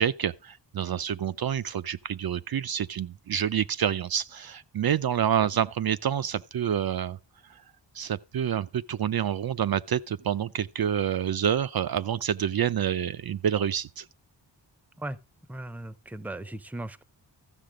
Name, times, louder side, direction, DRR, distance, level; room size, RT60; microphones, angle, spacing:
voice 1, 0.0-7.2 7.9-14.1, right 9 dB, 60° right, 0.5 m, -28 dB
voice 2, 15.5-17.0, right 1 dB, 5° right, 0.6 m, -37 dB
13.5 x 6.6 x 5.0 m
wide cardioid pair, 125°, 43 cm